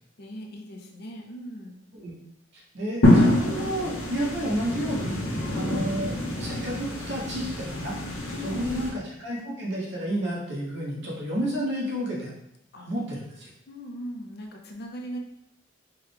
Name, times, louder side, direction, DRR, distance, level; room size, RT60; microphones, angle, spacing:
voice 1, 0.2-1.7 5.4-5.8 8.3-8.8 12.7-12.9 13.7-15.2, equal, 50° left, 1 dB, 0.5 m, -38 dB
voice 2, 2.7-8.0 8.4-12.3 12.8-13.5, equal, 55° right, -4 dB, 1.1 m, -31 dB
sound 1, 3.0-8.9, left 1 dB, 75° left, 0.9 m, -26 dB
4.7 x 2.2 x 3.3 m, 0.79 s
head